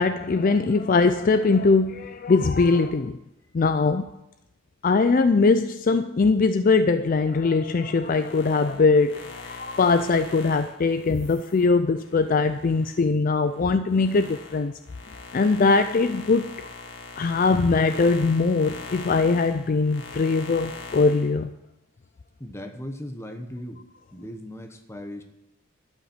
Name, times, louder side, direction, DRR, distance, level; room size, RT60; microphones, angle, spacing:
voice 1, 0.0-3.2 3.5-4.1 4.8-14.7 15.3-16.7 17.2-21.5, left 4 dB, 40° left, 11 dB, 0.4 m, -21 dB
sound 1, 7.9-13.0 13.5-21.3, left 3 dB, 55° left, 1.9 m, -42 dB
voice 2, 22.4-23.8 24.1-25.2, left 1 dB, 10° left, 6 dB, 1.0 m, -37 dB
12.5 x 5.7 x 8.9 m, 0.91 s
head